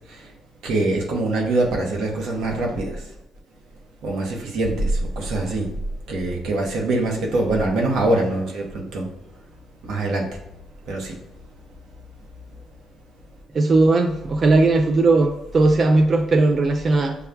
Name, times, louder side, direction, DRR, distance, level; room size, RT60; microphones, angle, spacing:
voice 1, 0.6-3.1 4.0-5.7 6.1-9.1 9.8-10.4 10.9-11.2, right 2 dB, 85° right, 0 dB, 0.9 m, -23 dB
voice 2, 13.5-17.1, right 3 dB, 45° right, 3 dB, 0.3 m, -17 dB
6.5 x 2.3 x 2.2 m, 0.89 s
cardioid pair, 90°, 0 cm